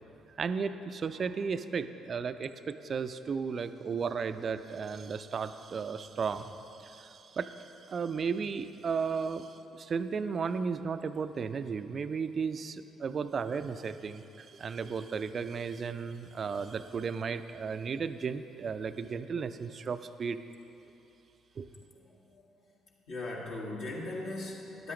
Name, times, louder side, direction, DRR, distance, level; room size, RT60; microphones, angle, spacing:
voice 1, 0.4-20.4 21.6-21.7, right 5 dB, 45° right, 11 dB, 0.4 m, -34 dB
voice 2, 23.1-24.9, left 2 dB, 60° left, -3 dB, 1.7 m, -38 dB
13.0 x 11.0 x 3.1 m, 2.9 s
figure-of-eight pair, 45°, 0 cm